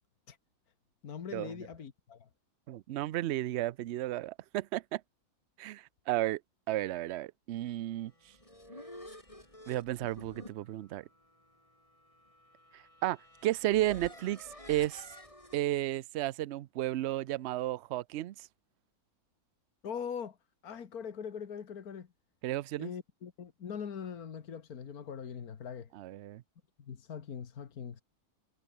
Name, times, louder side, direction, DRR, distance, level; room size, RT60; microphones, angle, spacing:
voice 1, 1.0-2.3 19.8-20.4 20.6-22.1 22.8-25.9 26.8-28.0, left 7 dB, 80° left, 2.0 m, -42 dB
voice 2, 2.7-5.0 5.6-6.4 6.7-8.1 9.7-11.0 13.0-15.1 15.5-18.5 22.4-22.9 25.9-26.4, right 15 dB, 65° right, 0.7 m, -33 dB
sound 1, 8.1-15.6, left 1 dB, 20° left, 6.6 m, -52 dB
omnidirectional pair, 1.5 m